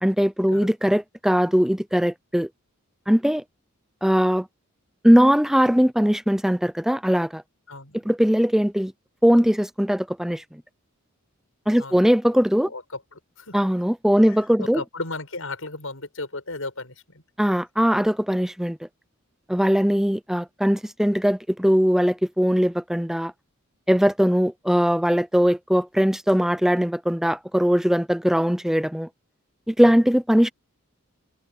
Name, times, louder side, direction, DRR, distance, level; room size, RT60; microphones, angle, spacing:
voice 1, 0.0-2.5 3.1-3.4 4.0-4.5 5.0-7.4 8.1-8.9 9.2-10.6 11.7-12.7 13.5-14.8 17.4-18.8 19.5-23.3 23.9-29.1 29.7-30.5, equal, ahead, 0.5 m, -20 dB
voice 2, 7.7-8.1 11.8-12.0 12.7-13.6 14.3-17.2 29.8-30.0, left 2 dB, 75° left, 6.5 m, -35 dB
head